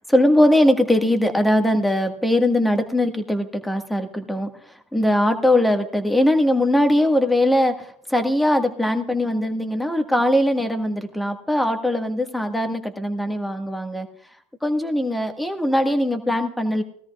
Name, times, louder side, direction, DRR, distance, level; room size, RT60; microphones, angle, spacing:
voice 1, 0.1-14.1 14.6-16.8, left 1 dB, 5° left, 6 dB, 1.6 m, -20 dB
19.5 x 13.5 x 2.4 m, 0.68 s
supercardioid pair, 100°, 0 cm